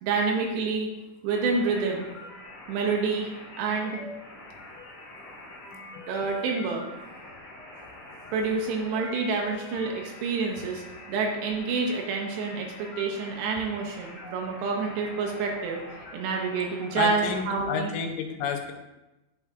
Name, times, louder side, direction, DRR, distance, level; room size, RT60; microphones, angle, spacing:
voice 1, 0.0-0.9 1.2-2.1 2.7-3.3 3.6-4.0 6.1-6.9 8.3-15.8 16.1-17.9, right 4 dB, 80° right, 1 dB, 2.7 m, -28 dB
sound 1, 1.3-17.4, left 2 dB, 40° left, 2.2 m, -45 dB
voice 2, 17.0-18.7, left 6 dB, 90° left, 4 dB, 3.2 m, -30 dB
11.0 x 4.7 x 2.3 m, 1.0 s
omnidirectional pair, 5.5 m